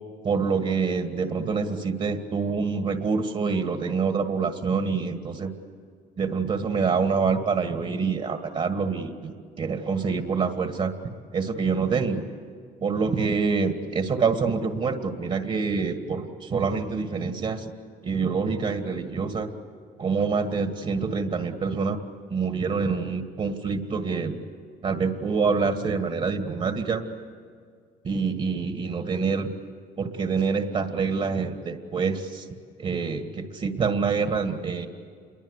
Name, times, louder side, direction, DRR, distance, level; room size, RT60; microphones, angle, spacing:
voice 1, 0.2-5.5 6.2-10.9 11.3-12.3 12.8-17.7 18.0-19.5 20.0-22.0 22.3-24.4 24.8-27.0 28.0-29.5 30.0-32.5 32.8-34.9, right 5 dB, 40° right, 6 dB, 2.0 m, -26 dB
28.0 x 22.5 x 8.3 m, 2.1 s
cardioid pair, 110°, 17 cm